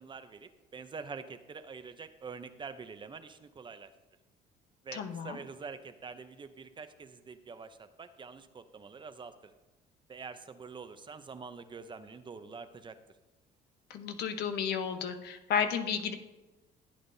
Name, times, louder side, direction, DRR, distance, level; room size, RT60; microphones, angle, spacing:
voice 1, 0.0-3.9 4.8-9.5 10.1-13.0, right 5 dB, 30° right, 10 dB, 0.7 m, -46 dB
voice 2, 4.9-5.4 13.9-16.1, left 7 dB, 75° left, 7 dB, 1.0 m, -32 dB
15.0 x 8.6 x 2.7 m, 1.1 s
cardioid pair, 110°, 17 cm